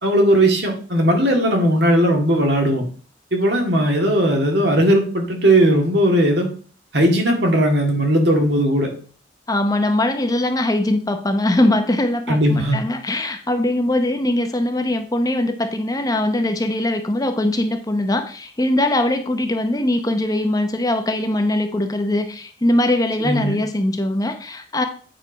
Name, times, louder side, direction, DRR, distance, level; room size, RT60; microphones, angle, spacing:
voice 1, 0.0-2.8 3.3-6.5 6.9-8.9 12.3-12.8 23.2-23.6, right 1 dB, 65° right, 3 dB, 2.1 m, -17 dB
voice 2, 9.5-24.8, left 1 dB, 20° left, 6 dB, 0.7 m, -21 dB
9.0 x 4.4 x 5.0 m, 0.42 s
head